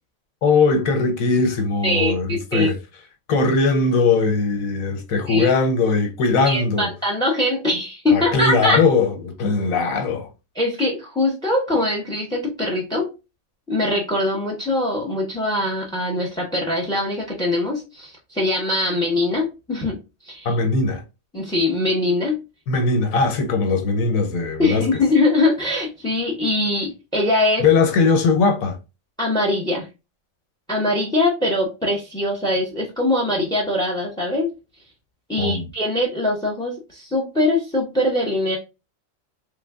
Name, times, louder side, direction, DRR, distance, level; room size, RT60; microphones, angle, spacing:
voice 1, 0.4-2.8 3.3-6.9 8.1-10.3 20.4-21.0 22.7-24.9 27.6-28.8 35.4-35.7, left 4 dB, 85° left, 1.2 m, -20 dB
voice 2, 1.8-2.7 5.3-5.5 6.5-8.8 10.5-13.1 13.7-20.0 20.3-20.5 21.3-22.4 24.6-27.6 29.2-29.9 30.7-34.5 35.3-38.6, left 2 dB, 5° left, 0.5 m, -22 dB
3.4 x 2.2 x 3.4 m
omnidirectional pair, 1.4 m